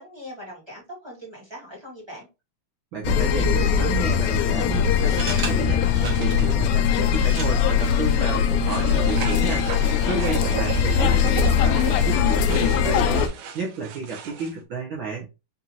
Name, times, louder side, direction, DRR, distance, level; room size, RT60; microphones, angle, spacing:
voice 1, 0.0-2.3 10.2-10.8, equal, 10° right, -4 dB, 1.3 m, -41 dB
voice 2, 2.9-15.3, right 5 dB, 70° right, -4 dB, 1.2 m, -32 dB
sound 1, 3.0-13.3, left 8 dB, 80° left, 1.7 m, -21 dB
sound 2, 4.8-12.1, right 4 dB, 50° right, 1.7 m, -40 dB
sound 3, 8.6-14.5, right 8 dB, 90° right, 2.2 m, -35 dB
5.4 x 2.9 x 2.5 m, 0.27 s
omnidirectional pair, 3.5 m